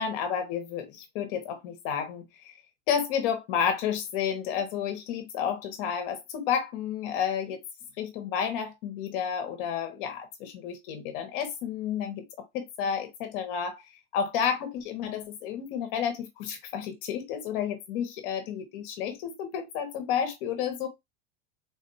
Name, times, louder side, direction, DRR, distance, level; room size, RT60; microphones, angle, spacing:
voice 1, 0.0-2.5 2.9-7.6 8.0-13.9 14.1-20.9, left 8 dB, 45° left, 1.0 m, -31 dB
3.8 x 2.5 x 2.7 m
supercardioid pair, 175°, 38 cm